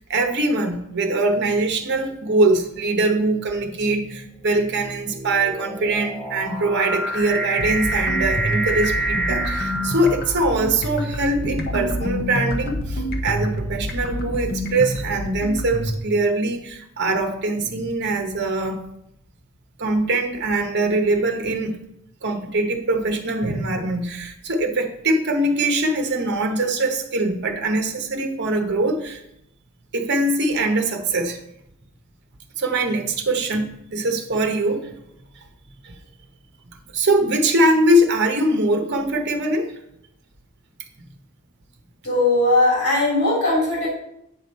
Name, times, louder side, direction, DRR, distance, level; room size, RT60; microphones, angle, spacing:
voice 1, 0.0-18.8 19.8-21.8 22.2-29.2 29.9-31.4 32.6-34.9 35.4-35.5 35.8-35.9 36.9-39.7, right 2 dB, 50° right, 5 dB, 0.9 m, -22 dB
sound 1, 1.4-1.7 2.6-10.8, right 2 dB, 5° left, 1.1 m, -28 dB
sound 2, 7.6-16.0, equal, 45° left, 0.8 m, -28 dB
voice 2, 42.0-43.9, left 2 dB, 85° left, -4 dB, 3.3 m, -19 dB
8.7 x 5.0 x 4.1 m, 0.78 s
head